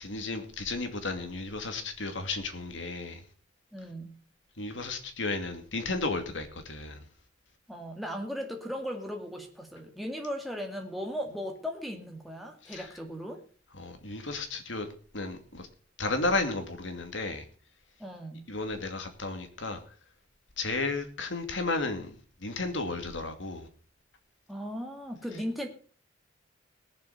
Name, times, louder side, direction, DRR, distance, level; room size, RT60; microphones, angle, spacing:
voice 1, 0.0-3.2 4.6-7.0 12.6-12.9 13.8-14.9 15.1-15.7 16.0-17.5 18.5-19.8 20.6-22.1 22.4-23.7, left 3 dB, 70° left, 2.5 m, -33 dB
voice 2, 3.7-4.2 7.7-13.4 18.0-18.5 24.5-25.7, equal, ahead, 2.3 m, -37 dB
18.5 x 7.3 x 6.9 m
head